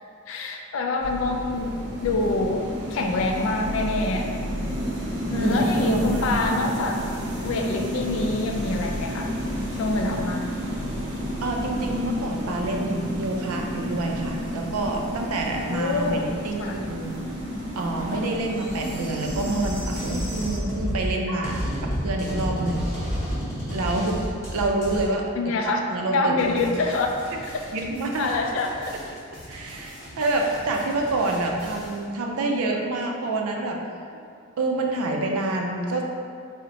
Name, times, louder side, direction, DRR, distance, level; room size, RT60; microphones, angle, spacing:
voice 1, 0.3-4.3 5.3-7.0 7.4-9.3 9.8-10.5 15.6-16.3 16.6-16.8 25.4-25.8 26.1-27.1 28.2-28.9, left 3 dB, 65° left, 2 dB, 0.3 m, -26 dB
sound 1, 1.0-20.6, equal, 50° right, 0.6 m, -30 dB
voice 2, 5.4-6.3 11.4-17.1 17.8-22.9 23.7-24.2 24.5-26.7 27.7-28.3 29.5-33.8 34.6-36.0, right 2 dB, 90° right, 2 dB, 0.4 m, -27 dB
sound 2, 19.2-25.0, equal, 15° left, 0.7 m, -30 dB
sound 3, 26.4-32.1, equal, 5° right, 1.3 m, -43 dB
2.7 x 2.1 x 3.9 m, 2.3 s
head